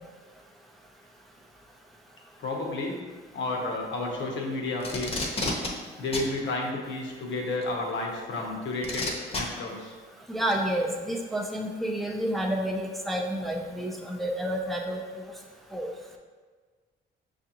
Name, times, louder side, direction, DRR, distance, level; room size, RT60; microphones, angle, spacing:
voice 1, 2.4-3.0 3.3-5.4 6.0-9.9, left 2 dB, 70° left, 0 dB, 0.9 m, -31 dB
Packing tape duct tape, 4.8-5.7 6.1-6.3 7.6-7.7 8.8-9.4 10.5-10.6, left 2 dB, 30° left, 0.8 m, -30 dB
voice 2, 10.3-15.0 15.7-15.9, equal, ahead, 0 dB, 0.5 m, -29 dB
6.2 x 2.5 x 2.9 m, 1.4 s
cardioid pair, 90°, 20 cm